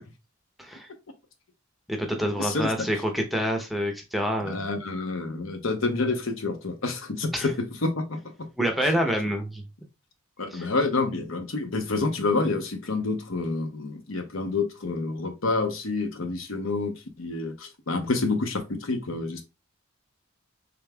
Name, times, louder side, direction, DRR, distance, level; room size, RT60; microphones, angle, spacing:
voice 1, 1.9-4.6 7.3-7.5 8.6-9.6 10.5-10.7, equal, ahead, 0.7 m, -27 dB
voice 2, 2.4-2.7 4.4-8.2 10.4-19.5, left 3 dB, 75° left, 0.8 m, -28 dB
5.1 x 3.5 x 2.3 m
head